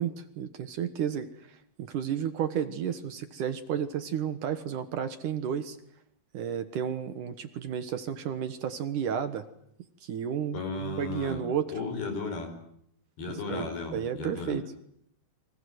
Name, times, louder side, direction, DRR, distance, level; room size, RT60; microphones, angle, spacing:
voice 1, 0.0-5.8 6.3-9.5 10.0-11.7 13.5-14.7, right 8 dB, 65° right, 10 dB, 2.6 m, -32 dB
voice 2, 10.5-11.4 11.7-12.5 13.2-14.6, left 3 dB, 70° left, 7 dB, 7.1 m, -35 dB
29.5 x 24.5 x 8.0 m, 0.71 s
omnidirectional pair, 4.5 m